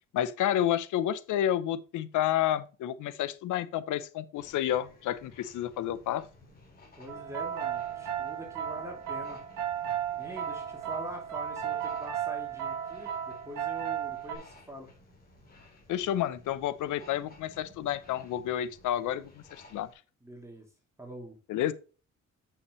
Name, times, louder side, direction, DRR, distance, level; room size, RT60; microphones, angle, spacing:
voice 1, 0.1-6.2 15.9-19.9 21.5-21.7, left 11 dB, 80° left, 0.7 m, -30 dB
sound 1, 4.3-19.9, left 2 dB, 30° left, 3.5 m, -56 dB
voice 2, 7.0-9.4 10.2-14.9 20.2-20.7 21.0-21.4, equal, 10° right, 2.8 m, -44 dB
sound 2, 7.1-14.4, right 9 dB, 90° right, 1.7 m, -34 dB
8.3 x 6.0 x 3.1 m
cardioid pair, 90°, 30 cm